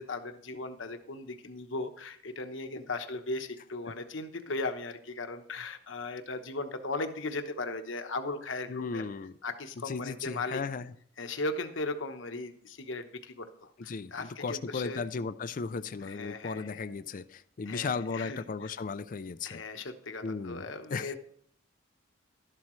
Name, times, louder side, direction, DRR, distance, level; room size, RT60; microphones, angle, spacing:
voice 1, 0.0-9.0 9.4-10.6 11.2-15.0 16.0-16.9 17.7-18.4 19.4-21.2, left 2 dB, 75° left, 7 dB, 1.1 m, -37 dB
voice 2, 8.7-9.3 9.9-10.9 13.8-19.6 20.2-21.1, left 4 dB, 45° left, 13 dB, 0.4 m, -36 dB
12.5 x 11.5 x 3.2 m, 0.63 s
head